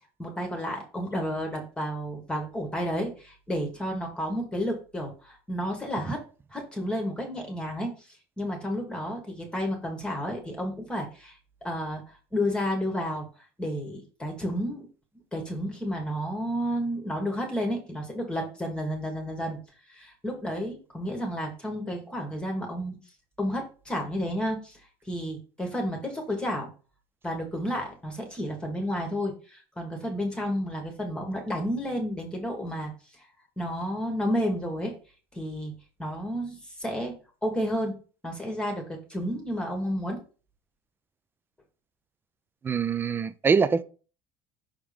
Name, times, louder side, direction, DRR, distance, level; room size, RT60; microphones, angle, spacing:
voice 1, 0.2-6.2 6.5-8.1 8.4-11.4 11.6-13.3 13.6-14.9 15.3-19.6 19.9-23.0 23.4-26.7 27.2-32.9 33.2-33.3 33.6-35.0 35.3-35.7 36.0-37.1 37.4-38.0 38.2-40.2, equal, 10° left, 1.3 m, -31 dB
voice 2, 42.6-43.8, right 5 dB, 20° right, 0.4 m, -24 dB
5.9 x 3.6 x 4.9 m
cardioid pair, 140°, 12 cm